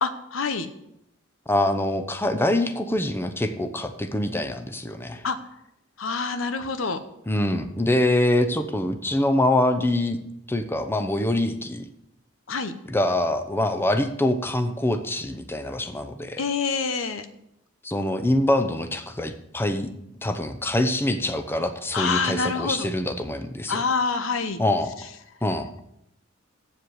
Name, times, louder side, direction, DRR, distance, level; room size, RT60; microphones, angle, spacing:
voice 1, 0.0-0.7 5.2-5.4 6.0-7.0 12.5-12.7 16.4-17.3 21.9-22.9 23.7-24.6, left 4 dB, 90° left, 10 dB, 0.9 m, -26 dB
voice 2, 1.5-5.2 7.3-10.2 10.5-11.8 12.9-16.4 17.8-19.9 20.2-23.8 24.6-24.9 25.4-25.7, left 1 dB, 10° left, 8 dB, 0.7 m, -24 dB
7.8 x 7.4 x 8.4 m, 0.79 s
head